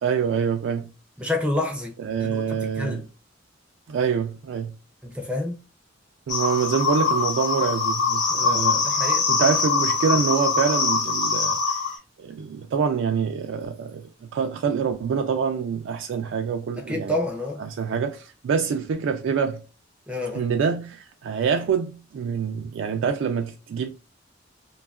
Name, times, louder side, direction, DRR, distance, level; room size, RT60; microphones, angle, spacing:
voice 1, 0.0-0.9 2.0-3.0 3.9-4.7 6.3-8.9 9.3-11.8 12.2-17.1 17.6-19.6 20.3-23.9, right 6 dB, 75° right, 0.3 m, -26 dB
voice 2, 1.2-1.9 2.2-3.1 5.0-5.6 8.4-9.3 16.8-17.6 20.1-20.5, left 1 dB, 5° right, 0.4 m, -29 dB
sound 1, 6.3-12.0, left 4 dB, 60° left, 0.8 m, -23 dB
2.7 x 2.3 x 2.2 m
head